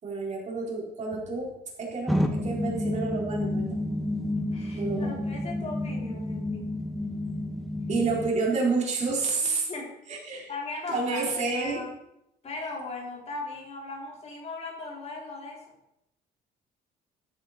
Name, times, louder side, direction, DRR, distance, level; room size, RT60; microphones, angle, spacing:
voice 1, 0.0-3.8 4.7-5.2 7.9-9.7 10.1-10.5 10.9-11.8, right 3 dB, 45° right, -3 dB, 4.1 m, -29 dB
sound 1, 2.1-8.3, left 1 dB, ahead, 1.2 m, -30 dB
voice 2, 4.5-6.9 9.4-9.9 10.5-11.9 12.4-15.6, left 3 dB, 40° left, -1 dB, 3.3 m, -38 dB
13.0 x 8.4 x 4.2 m, 0.82 s
cardioid pair, 110°, 17 cm